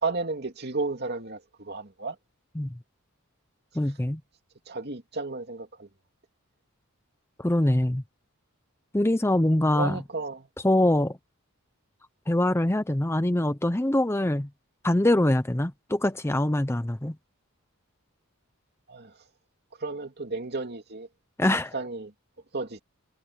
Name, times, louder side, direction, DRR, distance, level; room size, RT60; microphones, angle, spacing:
voice 1, 0.0-2.2 4.7-5.9 9.7-10.5 18.9-19.2 19.8-21.1 21.7-22.1 22.5-22.8, right 3 dB, 50° right, 2.6 m, -33 dB
voice 2, 3.7-4.2 7.4-8.0 8.9-10.0 10.6-11.2 12.3-14.5 14.8-17.2 21.4-21.7, left 1 dB, 10° left, 0.6 m, -24 dB
head